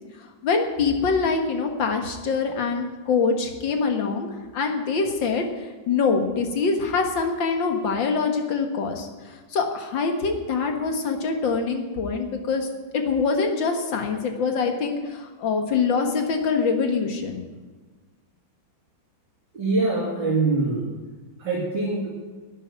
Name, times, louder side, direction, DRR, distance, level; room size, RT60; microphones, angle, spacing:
voice 1, 0.4-9.1 9.5-12.7 12.9-17.4, left 4 dB, 70° left, 4 dB, 2.3 m, -24 dB
voice 2, 19.5-20.9 21.4-22.1, right 3 dB, 60° right, -5 dB, 3.2 m, -24 dB
12.0 x 9.3 x 9.5 m, 1.3 s
omnidirectional pair, 2.1 m